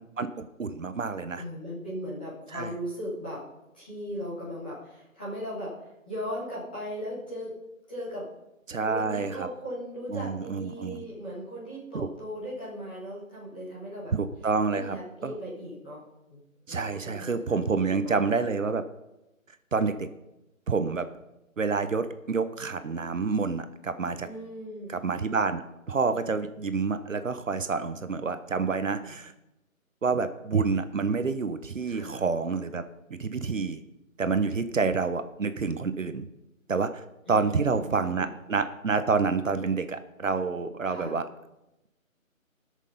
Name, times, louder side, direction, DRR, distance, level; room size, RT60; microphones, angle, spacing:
voice 1, 0.2-1.4 2.5-2.7 8.7-9.5 10.1-11.0 11.9-12.1 14.1-15.0 15.2-15.3 16.7-18.8 19.7-20.1 20.7-21.1 21.6-24.3 24.9-25.6 25.9-29.3 30.0-32.8 33.1-33.8 34.2-36.3 36.7-37.0 37.3-41.2, right 4 dB, 65° right, 10 dB, 0.9 m, -28 dB
voice 2, 1.4-3.4 3.7-5.7 6.0-7.5 7.9-8.3 8.8-14.1 14.7-16.0 16.3-16.4 16.7-18.3 24.2-24.9 28.9-29.1 31.8-32.2 37.2-38.4 40.9-41.2, equal, 5° left, -10 dB, 1.3 m, -38 dB
19.0 x 6.5 x 5.4 m, 0.93 s
figure-of-eight pair, 175°, 42 cm